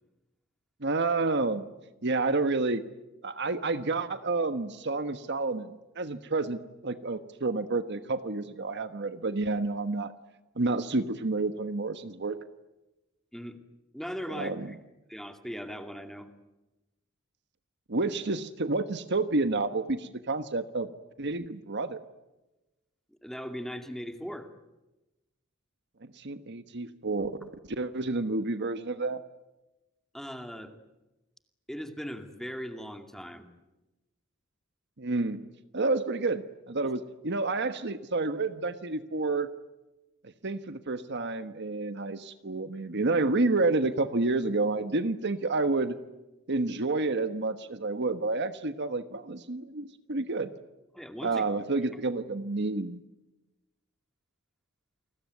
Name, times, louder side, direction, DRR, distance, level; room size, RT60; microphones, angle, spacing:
voice 1, 0.8-1.6 2.0-2.8 3.2-10.1 10.6-12.4 14.3-14.7 17.9-20.9 21.2-22.0 26.0-29.2 35.0-35.4 35.7-39.5 40.2-46.0 46.5-50.5 51.2-53.0, right 3 dB, 55° right, 10 dB, 1.3 m, -29 dB
voice 2, 13.9-14.8 15.1-16.3 23.2-24.5 30.1-30.7 31.7-33.5 36.8-36.9 50.9-51.4, equal, ahead, 6 dB, 2.4 m, -39 dB
29.0 x 20.5 x 9.5 m, 1.0 s
head